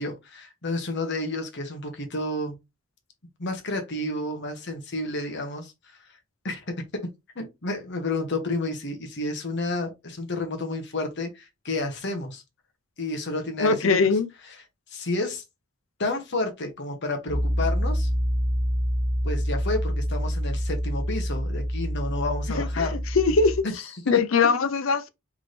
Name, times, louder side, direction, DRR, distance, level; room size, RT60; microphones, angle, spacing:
voice 1, 0.0-2.6 3.4-6.0 6.4-7.1 7.3-12.4 13.0-14.1 14.5-14.6 14.9-15.4 16.0-18.1 19.2-23.0 23.6-24.2, left 2 dB, 60° left, 1.3 m, -31 dB
voice 2, 13.6-14.3 22.6-22.9 23.1-23.6 24.1-25.1, left 4 dB, 75° left, 0.6 m, -21 dB
Piano, 17.3-23.6, equal, 35° left, 1.1 m, -27 dB
3.9 x 3.7 x 3.3 m
head